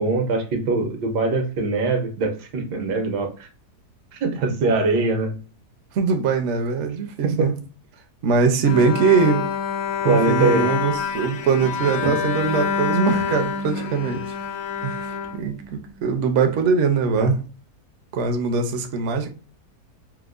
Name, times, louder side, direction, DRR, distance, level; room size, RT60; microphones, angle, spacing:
voice 1, 0.0-3.5 4.1-5.4 7.2-7.5 10.0-10.7 12.0-12.1 17.2-17.3, right 3 dB, 80° right, 1.4 m, -22 dB
voice 2, 5.9-7.5 8.2-9.5 10.0-14.2 14.8-17.4 18.1-19.3, right 5 dB, 65° right, 0.7 m, -21 dB
Bowed string instrument, 8.6-16.0, left 6 dB, 70° left, 0.9 m, -27 dB
4.5 x 2.1 x 2.4 m
omnidirectional pair, 1.8 m